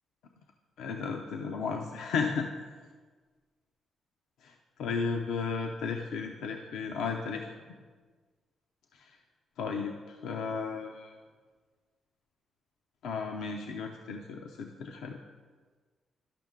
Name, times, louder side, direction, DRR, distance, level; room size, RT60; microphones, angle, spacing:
voice 1, 0.8-2.5 4.4-7.5 8.9-9.2 9.6-11.1 13.0-15.2, left 5 dB, 85° left, 2 dB, 0.5 m, -34 dB
12.0 x 5.4 x 3.6 m, 1.5 s
cardioid pair, 70°, 0 cm